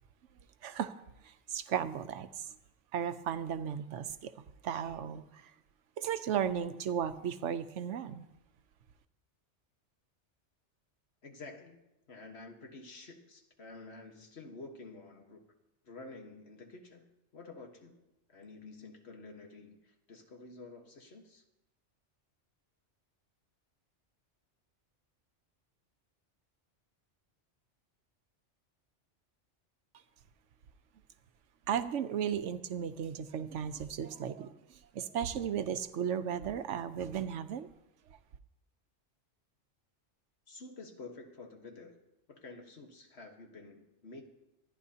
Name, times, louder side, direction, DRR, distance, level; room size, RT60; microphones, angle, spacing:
voice 1, 0.6-0.9 1.2-2.5 2.9-4.3 4.6-5.5 6.0-8.3 31.7-34.5 34.9-37.7, right 8 dB, 90° right, 11 dB, 1.0 m, -35 dB
voice 2, 11.2-11.8 12.1-15.4 15.8-17.0 17.3-18.0 18.3-21.4 40.5-42.0 42.3-44.2, left 3 dB, 65° left, 3 dB, 1.7 m, -50 dB
25.0 x 10.5 x 2.8 m, 0.91 s
omnidirectional pair, 1.2 m